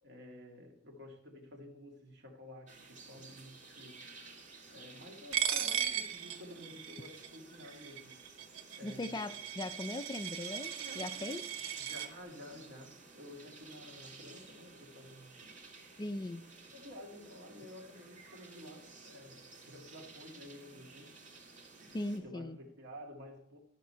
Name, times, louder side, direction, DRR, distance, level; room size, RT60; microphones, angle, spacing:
voice 1, 0.0-4.0 4.7-8.2 8.8-9.3 11.8-15.5 16.7-21.5 21.8-21.9 22.2-23.6, left 1 dB, 60° right, 2 dB, 2.0 m, -52 dB
sound 1, 2.7-22.2, right 3 dB, 40° right, 2.1 m, -54 dB
Coin (dropping), 5.3-12.1, right 9 dB, 75° right, 0.9 m, -38 dB
voice 2, 8.8-11.5 16.0-16.5 21.9-22.6, left 2 dB, 20° left, 10 dB, 0.4 m, -39 dB
13.0 x 5.9 x 5.6 m, 0.76 s
head